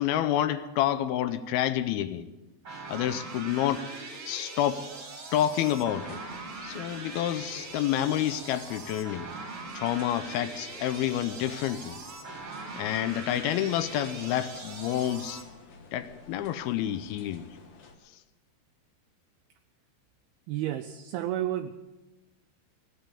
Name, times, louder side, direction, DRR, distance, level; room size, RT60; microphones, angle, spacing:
voice 1, 0.0-2.3 2.9-3.9 4.3-4.9 5.3-6.2 6.6-9.3 9.7-12.0 12.8-15.4 15.9-17.5, left 11 dB, 80° left, 12 dB, 2.3 m, -29 dB
sound 1, 2.7-15.4, right 3 dB, 30° right, 3.1 m, -41 dB
sound 2, 5.9-18.0, left 4 dB, 65° left, 1.5 m, -52 dB
voice 2, 20.5-21.7, right 13 dB, 80° right, 8 dB, 2.3 m, -31 dB
17.0 x 9.2 x 8.6 m, 1.1 s
omnidirectional pair, 4.9 m